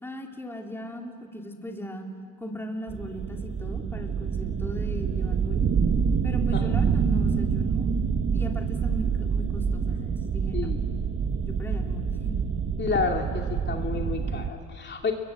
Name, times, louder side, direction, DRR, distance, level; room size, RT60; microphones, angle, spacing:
voice 1, 0.0-2.1 2.4-5.7 6.2-8.0 8.3-10.7 11.4-12.4, equal, 5° left, 2 dB, 2.8 m, -38 dB
sound 1, 2.9-14.5, right 6 dB, 35° right, 1.4 m, -27 dB
voice 2, 12.8-15.1, left 4 dB, 30° left, 2 dB, 2.8 m, -30 dB
29.5 x 23.0 x 7.9 m, 2.2 s
supercardioid pair, 95°, 38 cm